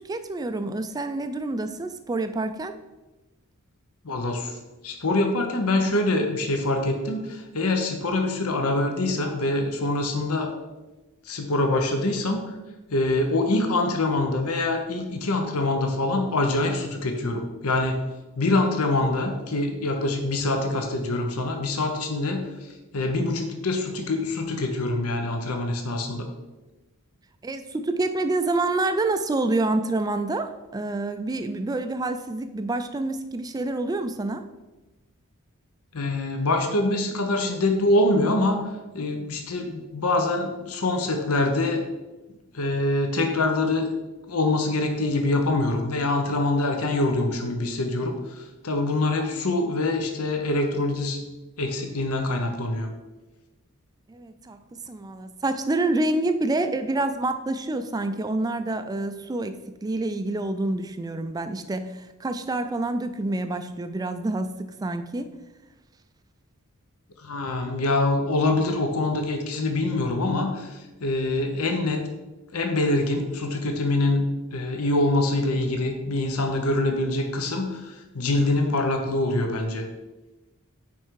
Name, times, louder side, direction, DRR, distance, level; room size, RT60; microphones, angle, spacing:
voice 1, 0.0-2.8 27.4-34.4 54.1-54.6 54.9-65.3, right 2 dB, 15° right, 9 dB, 0.3 m, -27 dB
voice 2, 4.0-4.6 4.8-10.5 11.3-12.5 12.9-18.0 18.4-22.5 22.9-26.3 35.9-38.6 38.9-41.8 42.5-43.9 44.3-51.2 51.6-52.9 67.2-72.0 72.5-74.3 74.5-79.9, left 2 dB, 80° left, 4 dB, 0.9 m, -25 dB
5.6 x 4.5 x 4.7 m, 1.1 s
head